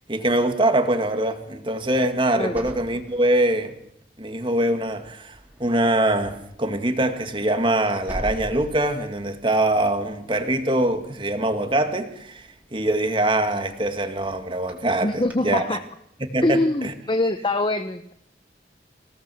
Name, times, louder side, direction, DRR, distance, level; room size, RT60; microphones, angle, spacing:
voice 1, 0.1-3.7 4.2-15.8 16.3-16.9, right 1 dB, 30° right, 7 dB, 2.1 m, -23 dB
sound 1, 2.4-4.0 4.5-4.8 5.0-15.3, equal, 10° right, 4.1 m, -43 dB
voice 2, 15.0-15.8 16.4-18.1, left 2 dB, 25° left, 9 dB, 0.9 m, -23 dB
26.0 x 17.5 x 7.7 m, 0.77 s
head